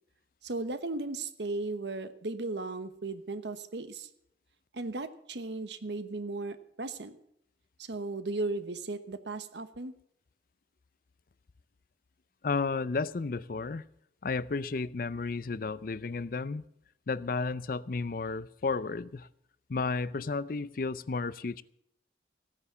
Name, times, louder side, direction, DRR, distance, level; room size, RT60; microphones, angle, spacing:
voice 1, 0.4-4.1 4.7-7.2 7.8-9.9, right 2 dB, 80° right, 1.1 m, -36 dB
voice 2, 12.4-13.8 14.2-16.6 17.1-19.3 19.7-21.6, left 4 dB, 50° left, 0.5 m, -32 dB
16.0 x 9.8 x 7.0 m
head